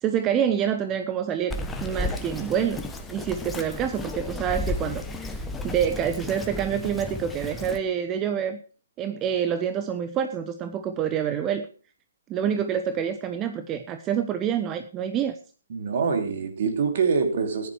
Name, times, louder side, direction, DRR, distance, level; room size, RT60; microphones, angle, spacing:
voice 1, 0.0-2.8 3.1-8.6 9.0-11.7 12.3-15.4, right 8 dB, 20° right, 10 dB, 0.8 m, -27 dB
Bird vocalization bird call bird song, 1.5-7.8, left 2 dB, 5° left, 1.3 m, -33 dB
voice 2, 15.7-17.7, right 5 dB, 45° right, 5 dB, 3.0 m, -25 dB
15.0 x 10.5 x 4.7 m, 0.38 s
figure-of-eight pair, 135°, 0 cm